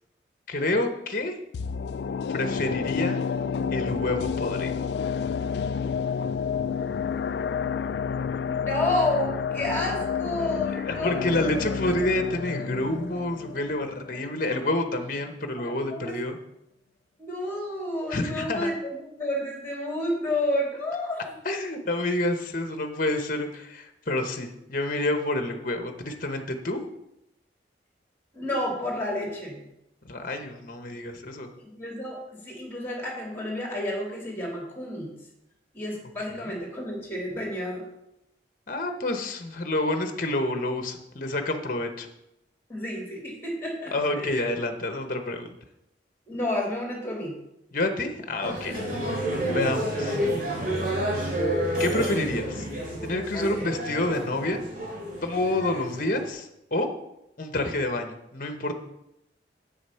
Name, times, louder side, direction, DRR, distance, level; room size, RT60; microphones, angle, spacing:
voice 1, 0.5-1.4 2.3-3.2 3.7-4.8 10.9-16.4 18.1-18.7 21.4-26.8 30.0-31.5 36.4-36.5 38.7-42.1 43.9-45.6 47.7-48.8 49.5-50.2 51.8-52.7 53.0-54.6 55.2-56.9 57.4-58.8, left 2 dB, 45° left, 6 dB, 1.0 m, -28 dB
sound 1, 1.5-14.6 14.9-15.0, left 6 dB, 65° left, 0.3 m, -30 dB
voice 2, 8.5-11.8 15.7-16.2 17.2-18.9 19.2-21.2 28.3-29.6 31.6-35.1 35.7-37.8 42.7-44.5 46.3-47.3 49.3-49.7 53.3-53.7, left 1 dB, 10° left, -1 dB, 2.8 m, -30 dB
sound 2, 48.4-56.3, right 1 dB, 50° right, 2.9 m, -30 dB
8.1 x 6.6 x 5.7 m, 0.84 s
head